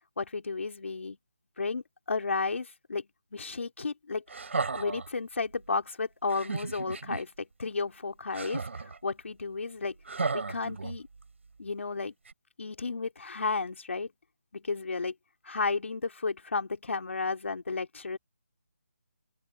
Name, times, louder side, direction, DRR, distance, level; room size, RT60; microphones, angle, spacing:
voice 1, 0.2-1.2 1.6-4.2 4.7-10.0 10.3-11.1 11.6-12.1 12.6-14.1 14.5-15.1 15.4-18.2, left 4 dB, 65° left, 3.5 m, -33 dB
sound 1, 4.3-5.1 6.3-7.2 8.3-9.0 10.1-11.2 12.3-12.4, right 4 dB, 60° right, 6.0 m, -34 dB
open air
hypercardioid pair, 170°, 7 cm